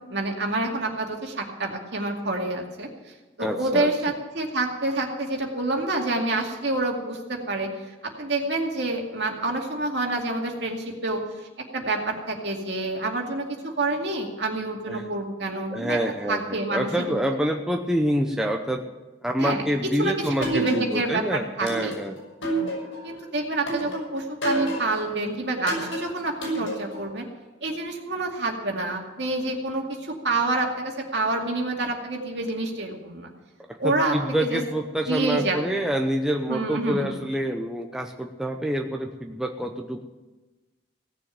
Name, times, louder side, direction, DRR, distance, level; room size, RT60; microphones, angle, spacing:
voice 1, 0.1-2.9 3.4-7.7 8.0-11.2 11.7-16.0 16.3-17.2 19.4-19.6 20.0-20.1 20.4-21.9 23.0-27.3 27.6-33.3 33.8-34.6 35.1-35.8 36.5-37.1, right 2 dB, 60° right, 1 dB, 2.3 m, -28 dB
voice 2, 3.4-3.9 14.9-15.1 15.7-18.8 19.2-22.2 33.7-40.0, equal, 5° right, 2 dB, 0.7 m, -27 dB
sound 1, 20.4-21.2 21.7-23.1 23.7-25.1 25.7-27.1, right 1 dB, 85° left, 6.6 m, -29 dB
17.0 x 7.0 x 9.1 m, 1.2 s
head